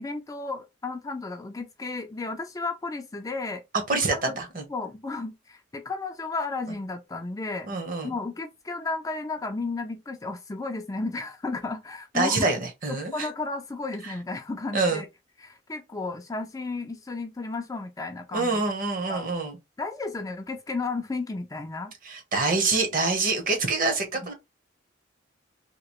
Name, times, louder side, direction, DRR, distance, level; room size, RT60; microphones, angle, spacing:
voice 1, 0.0-3.6 4.1-4.3 4.7-7.7 8.0-12.5 12.9-15.1 15.4-18.6 19.1-19.3 19.8-21.9, left 3 dB, 15° left, 0.3 m, -33 dB
voice 2, 3.9-4.6 7.7-8.1 12.1-13.3 14.0-14.1 14.7-15.0 18.3-19.6 22.0-24.3, right 3 dB, 45° right, 0.9 m, -26 dB
2.9 x 2.8 x 3.0 m
head